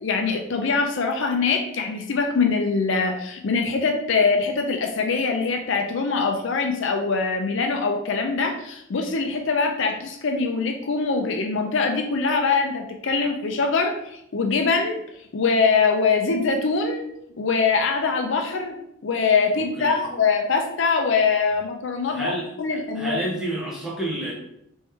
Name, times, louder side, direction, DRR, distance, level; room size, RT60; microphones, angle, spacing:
voice 1, 0.0-15.0 15.3-17.1 17.4-18.8 19.0-22.3 22.6-23.2, left 4 dB, 55° left, 4 dB, 0.4 m, -23 dB
voice 2, 19.5-20.0 22.1-24.3, right 1 dB, ahead, -6 dB, 1.1 m, -30 dB
3.6 x 3.1 x 4.5 m, 0.79 s
head